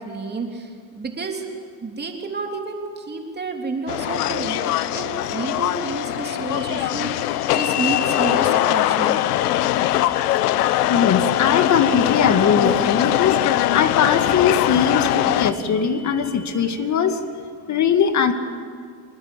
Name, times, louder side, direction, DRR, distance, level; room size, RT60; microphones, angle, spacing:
voice 1, 0.0-1.5 1.8-9.4, right 4 dB, 20° right, 2 dB, 3.2 m, -30 dB
sound 1, 3.9-15.5, left 13 dB, 85° left, 1.1 m, -21 dB
sound 2, 6.5-16.5, left 2 dB, 20° left, 7.7 m, -45 dB
voice 2, 10.9-13.3 13.7-17.2 17.7-18.3, left 7 dB, 40° left, 8 dB, 2.3 m, -20 dB
25.5 x 20.5 x 8.5 m, 2.1 s
supercardioid pair, 100°, 45 cm